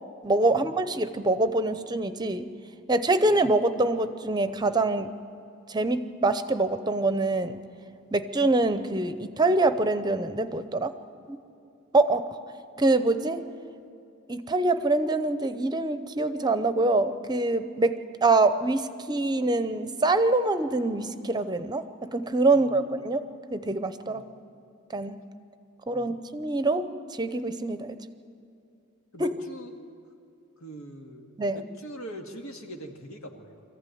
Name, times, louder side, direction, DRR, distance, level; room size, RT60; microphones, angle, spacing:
voice 1, 0.2-2.5 2.9-5.1 5.7-7.6 8.1-10.9 11.3-11.4 11.9-12.3 12.8-13.4 14.3-17.9 18.2-23.2 23.5-24.2 24.9-25.2 25.9-26.9 27.2-28.0 29.2-29.3 31.4-31.6, right 2 dB, 20° right, 11 dB, 0.7 m, -25 dB
voice 2, 29.1-29.9 30.6-33.6, right 1 dB, 85° left, 3 dB, 2.1 m, -43 dB
25.0 x 15.0 x 9.4 m, 2.6 s
head